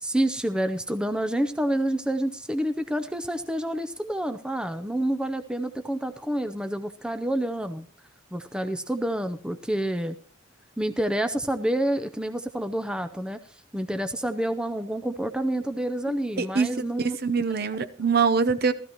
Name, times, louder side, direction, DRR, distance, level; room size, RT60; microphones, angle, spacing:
voice 1, 0.0-7.9 8.3-10.2 10.8-13.4 13.7-17.2, right 1 dB, 5° right, 0.5 m, -28 dB
voice 2, 16.4-16.7 17.0-18.7, right 5 dB, 50° right, 0.8 m, -23 dB
15.5 x 14.0 x 3.0 m
head